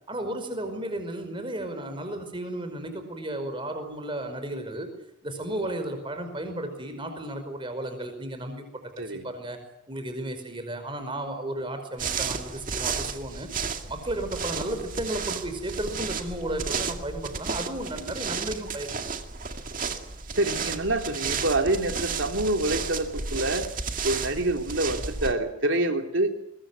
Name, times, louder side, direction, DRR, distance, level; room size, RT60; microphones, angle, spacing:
voice 1, 0.1-4.9 5.2-9.6 9.9-13.5 13.9-19.2, right 1 dB, 25° right, 7 dB, 5.1 m, -34 dB
sound 1, 12.0-25.3, right 5 dB, 40° right, 2.2 m, -33 dB
voice 2, 20.4-23.7 24.0-26.3, right 2 dB, 65° right, 5 dB, 3.3 m, -26 dB
23.0 x 21.0 x 9.5 m, 0.78 s
head